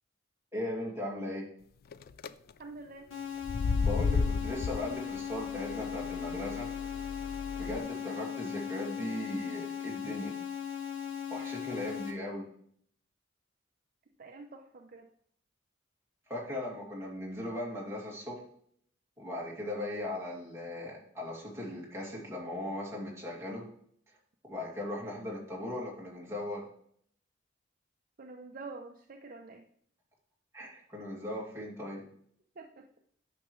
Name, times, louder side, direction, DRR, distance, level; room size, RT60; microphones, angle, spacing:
voice 1, 0.5-1.5 3.8-6.7 7.6-10.3 11.3-12.4 16.3-18.4 19.2-23.7 24.5-26.6 30.5-32.0, left 1 dB, 15° right, -4 dB, 2.3 m, -38 dB
sound 1, 1.9-2.3 3.4-7.8, left 4 dB, 50° left, 0.3 m, -33 dB
voice 2, 2.6-3.1 11.9-12.0 14.2-15.1 28.2-29.6 32.6-32.9, right 3 dB, 45° right, 3 dB, 0.6 m, -47 dB
sound 2, 3.1-12.1, left 8 dB, 80° left, 1.6 m, -38 dB
9.5 x 6.1 x 3.1 m, 0.63 s
head